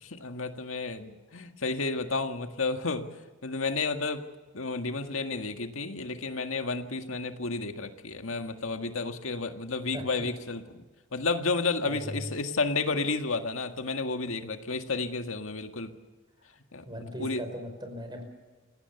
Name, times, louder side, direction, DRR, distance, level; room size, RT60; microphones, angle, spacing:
voice 1, 0.0-3.1 3.4-4.2 4.5-10.8 11.1-15.9 16.7-16.8 17.2-17.4, left 3 dB, 80° left, 6 dB, 1.8 m, -31 dB
voice 2, 9.9-10.3 11.8-12.3 16.9-18.2, equal, 20° right, 6 dB, 5.2 m, -38 dB
28.5 x 17.5 x 7.0 m, 1.2 s
head